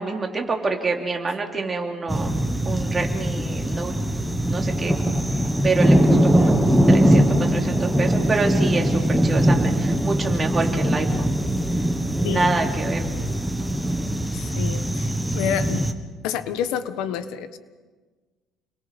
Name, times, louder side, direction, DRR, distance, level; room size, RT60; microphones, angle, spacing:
voice 1, 0.0-2.4 2.6-3.9 4.5-5.0 5.6-6.0 6.2-6.5 6.9-7.2 7.5-11.3 12.1-13.1, right 3 dB, 20° right, 1 dB, 2.9 m, -26 dB
sound 1, 2.1-15.9, equal, ahead, 1.4 m, -21 dB
voice 2, 12.2-12.5 14.3-15.9 16.2-17.6, left 9 dB, 85° left, 11 dB, 1.4 m, -29 dB
29.0 x 22.0 x 5.4 m, 1.4 s
cardioid pair, 150°, 0 cm